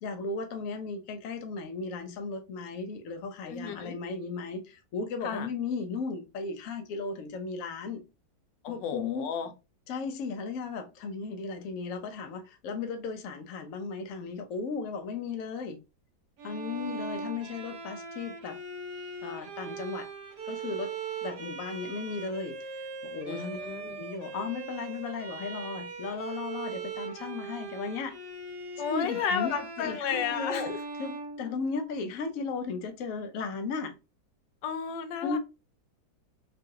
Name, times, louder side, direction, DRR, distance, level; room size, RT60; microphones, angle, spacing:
voice 1, 0.0-8.0 8.7-9.3 9.9-15.8 16.4-18.6 19.2-20.1 20.4-20.9 21.2-23.6 24.0-28.2 28.9-30.7 31.0-33.9 35.2-35.4, left 4 dB, 65° left, 0.9 m, -36 dB
voice 2, 3.5-4.0 5.2-5.5 8.6-9.5 23.2-24.0 28.8-30.8 34.6-35.4, left 7 dB, 85° left, 1.3 m, -33 dB
Bowed string instrument, 16.4-32.1, right 4 dB, 65° right, 1.3 m, -40 dB
3.8 x 2.3 x 2.7 m
omnidirectional pair, 1.9 m